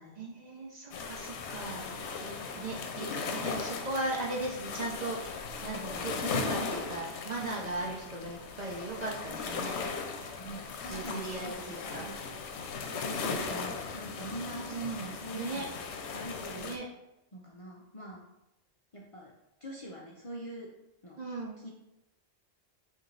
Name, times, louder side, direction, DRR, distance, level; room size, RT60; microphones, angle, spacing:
voice 1, 0.2-1.8 2.2-5.2 5.6-9.7 10.9-12.0 14.7-15.6 16.6-16.8 21.2-21.6, right 2 dB, 45° right, -2 dB, 0.7 m, -37 dB
sound 1, 0.9-16.8, left 4 dB, 75° left, 0.9 m, -38 dB
voice 2, 10.4-12.2 13.0-15.8 16.1-16.8 17.3-18.2 18.9-19.3 19.6-20.7 21.0-21.2 21.6-21.7, right 1 dB, 40° left, -3 dB, 0.5 m, -44 dB
6.0 x 2.7 x 3.2 m, 0.91 s
omnidirectional pair, 1.1 m